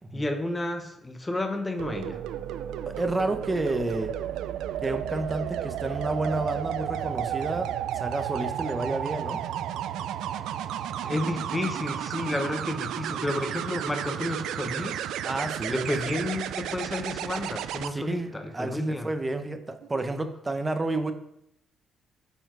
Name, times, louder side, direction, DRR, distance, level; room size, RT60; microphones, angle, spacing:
voice 1, 0.1-2.2 11.0-15.1 15.7-19.1, left 1 dB, 15° left, 6 dB, 1.0 m, -31 dB
sound 1, 1.8-17.9 19.8-20.1, right 10 dB, 85° right, 0.3 m, -33 dB
voice 2, 2.9-4.2 4.8-9.4 15.2-15.9 17.9-21.1, right 2 dB, 20° right, 8 dB, 0.8 m, -30 dB
8.1 x 4.4 x 4.7 m, 0.78 s
cardioid pair, 90°, 0 cm